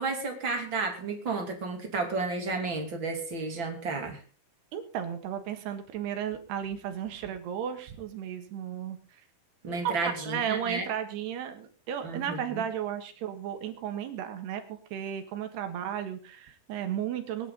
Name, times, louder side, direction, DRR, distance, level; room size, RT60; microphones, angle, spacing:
voice 1, 0.0-4.2 9.6-10.8 12.0-12.6, right 3 dB, 35° right, 3 dB, 2.1 m, -32 dB
voice 2, 4.7-9.2 9.8-9.9 10.2-17.5, right 9 dB, 65° right, 7 dB, 3.3 m, -34 dB
22.0 x 11.0 x 4.0 m, 0.39 s
omnidirectional pair, 5.9 m